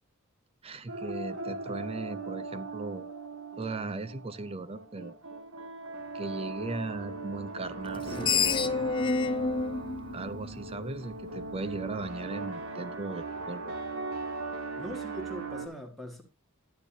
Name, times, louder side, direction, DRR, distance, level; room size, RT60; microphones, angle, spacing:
voice 1, 0.6-3.0 3.6-5.2 6.1-8.9 10.1-13.7, right 3 dB, 25° right, 0.5 m, -38 dB
sound 1, 0.9-15.7, right 3 dB, 85° right, 2.0 m, -39 dB
Screech, 7.9-11.1, left 4 dB, 20° left, 0.4 m, -29 dB
voice 2, 14.8-16.2, equal, ahead, 1.7 m, -41 dB
11.5 x 9.4 x 2.7 m
head